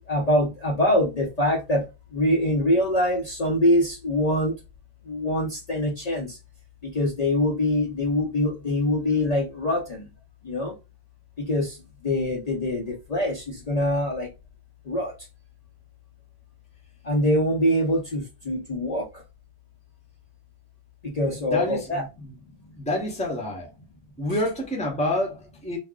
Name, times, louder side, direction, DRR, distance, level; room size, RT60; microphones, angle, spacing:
voice 1, 0.1-1.9 2.1-4.5 5.1-6.4 6.9-10.0 10.4-10.7 11.4-11.8 12.0-14.3 14.9-15.1 17.0-19.0 21.0-22.0, left 1 dB, 45° left, 0.6 m, -24 dB
voice 2, 21.4-22.3 22.8-23.7 24.2-25.8, left 1 dB, 10° left, 0.7 m, -28 dB
2.4 x 2.0 x 3.5 m
omnidirectional pair, 1.1 m